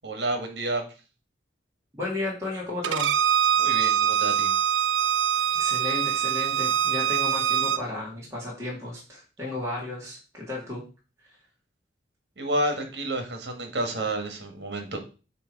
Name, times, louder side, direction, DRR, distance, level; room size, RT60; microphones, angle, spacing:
voice 1, 0.0-0.8 3.6-4.5 12.4-15.0, right 1 dB, 65° right, 5 dB, 1.6 m, -30 dB
voice 2, 1.9-3.1 5.6-10.8, left 2 dB, 15° right, -5 dB, 1.9 m, -33 dB
Bowed string instrument, 2.8-7.8, right 8 dB, 80° right, 0.5 m, -24 dB
8.4 x 3.1 x 4.6 m, 0.34 s
head